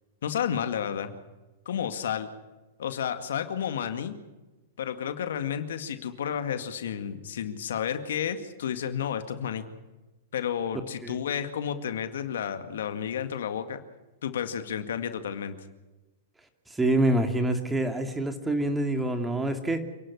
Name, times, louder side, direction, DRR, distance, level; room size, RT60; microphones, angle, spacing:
voice 1, 0.2-1.2 1.7-2.3 2.8-4.1 4.8-9.6 10.3-13.8 14.2-15.5, left 8 dB, 75° left, 9 dB, 2.1 m, -31 dB
voice 2, 16.7-19.8, right 1 dB, 10° right, 6 dB, 2.6 m, -26 dB
28.0 x 11.5 x 9.8 m, 1.1 s
hypercardioid pair, 120°, 0 cm